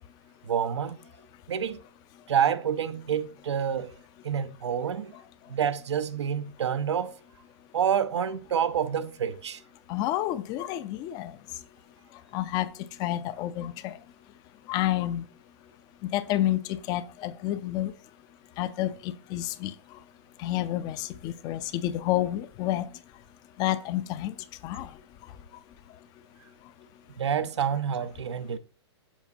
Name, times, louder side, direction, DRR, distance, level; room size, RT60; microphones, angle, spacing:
voice 1, 0.5-1.0 1.5-1.8 2.3-4.0 4.2-5.1 5.5-7.2 7.7-9.6 27.2-28.6, right 8 dB, 75° right, 0.6 m, -28 dB
voice 2, 9.9-11.4 12.3-12.7 13.0-14.0 14.7-15.3 16.1-17.9 18.6-20.0 20.4-22.9 23.6-24.4 24.6-25.0, left 13 dB, 30° left, 0.5 m, -29 dB
7.2 x 4.9 x 2.7 m
hypercardioid pair, 125°, 15 cm